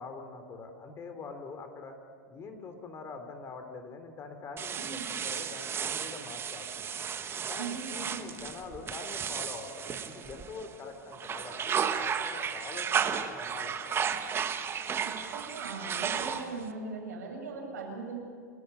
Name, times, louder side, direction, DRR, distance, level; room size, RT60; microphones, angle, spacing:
voice 1, 0.0-1.9 2.3-6.9 7.4-14.1, left 4 dB, 30° left, 6 dB, 3.4 m, -44 dB
sound 1, 4.6-10.7 11.1-16.7, right 7 dB, 25° right, 1.5 m, -34 dB
voice 2, 4.8-5.1 7.6-8.3 15.0-18.2, right 4 dB, 75° right, 0 dB, 7.7 m, -40 dB
28.5 x 13.5 x 9.5 m, 2.2 s
hypercardioid pair, 95°, 9 cm